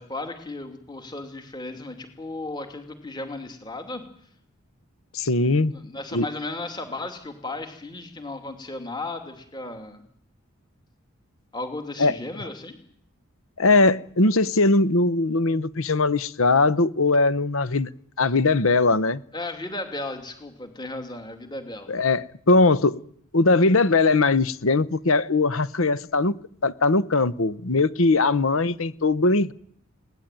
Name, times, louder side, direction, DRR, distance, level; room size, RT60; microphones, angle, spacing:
voice 1, 0.0-4.0 5.6-10.0 11.5-12.8 19.3-21.9, left 2 dB, 20° left, 2.7 m, -35 dB
voice 2, 5.1-5.7 6.1-6.3 12.0-12.2 13.6-17.9 18.2-19.2 21.9-23.0 23.3-29.5, left 3 dB, 75° left, 0.9 m, -20 dB
22.0 x 18.0 x 9.2 m
head